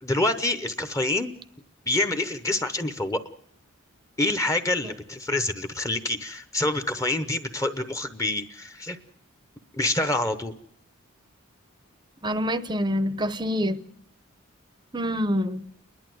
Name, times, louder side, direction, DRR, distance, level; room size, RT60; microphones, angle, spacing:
voice 1, 0.0-1.3 1.9-3.2 4.2-9.0 9.8-10.5, left 2 dB, 15° left, 0.8 m, -26 dB
voice 2, 12.2-13.8 14.9-15.6, equal, 20° right, 0.7 m, -26 dB
30.0 x 11.5 x 7.7 m
head